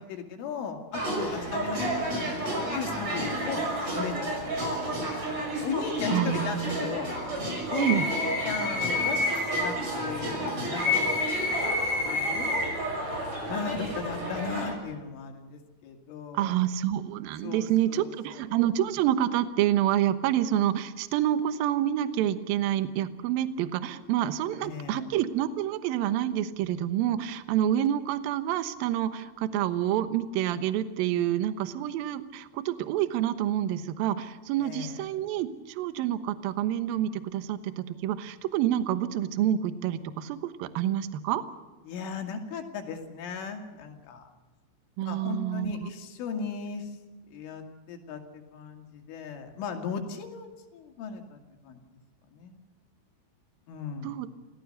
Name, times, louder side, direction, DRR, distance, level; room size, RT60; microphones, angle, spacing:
voice 1, 0.0-2.4 2.7-3.7 3.9-5.3 5.6-7.1 7.7-12.7 13.5-16.5 17.4-18.4 24.6-25.1 34.6-35.0 41.9-44.3 45.1-47.0 47.3-51.4 51.6-51.8 52.3-52.6 53.7-54.2, left 6 dB, 75° left, 4 dB, 4.8 m, -37 dB
sound 1, 0.9-14.7, equal, 35° right, 7.0 m, -30 dB
voice 2, 6.1-6.8 7.8-8.1 16.3-41.4 45.0-45.9 54.0-54.3, right 11 dB, 75° right, 11 dB, 2.2 m, -28 dB
29.0 x 17.0 x 6.6 m, 1.2 s
omnidirectional pair, 5.7 m